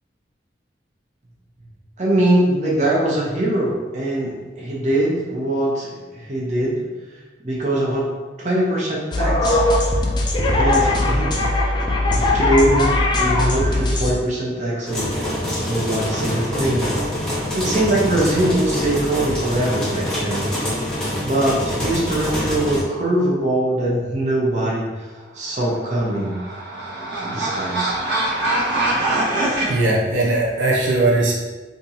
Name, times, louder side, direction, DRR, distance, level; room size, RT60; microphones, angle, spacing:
voice 1, 2.0-6.8 7.4-8.1 8.4-9.6 10.5-11.3 11.8-15.1 15.6-16.9 17.3-20.4 21.2-25.0 25.3-26.4 27.2-27.9, right 1 dB, 40° right, -5 dB, 0.7 m, -22 dB
sound 1, 9.1-14.1, left 2 dB, 25° left, 0.3 m, -19 dB
sound 2, 14.9-22.8, left 1 dB, 5° left, 0.9 m, -25 dB
sound 3, 25.8-29.7, right 2 dB, 60° right, 1.0 m, -23 dB
voice 2, 29.7-31.3, right 2 dB, 80° right, -3 dB, 0.5 m, -19 dB
3.5 x 2.7 x 2.8 m, 1.3 s
head